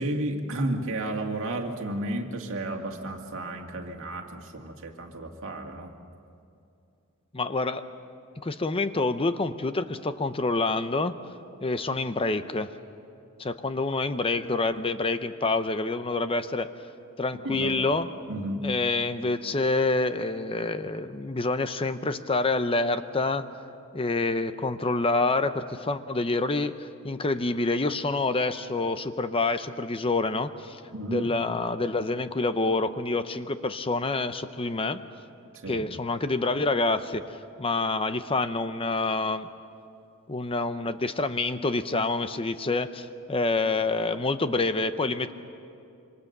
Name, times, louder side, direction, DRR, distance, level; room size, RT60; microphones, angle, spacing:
voice 1, 0.0-5.9 17.4-17.7 18.3-18.7 30.9-31.3 35.6-35.9, right 1 dB, 65° right, 2 dB, 2.2 m, -32 dB
voice 2, 7.3-7.8 8.4-11.2 11.6-12.7 13.4-16.7 17.2-18.1 18.6-23.6 23.9-30.8 31.1-35.0 35.7-39.5 40.3-45.3, left 3 dB, 25° left, 11 dB, 0.7 m, -27 dB
26.5 x 25.0 x 6.7 m, 2.5 s
head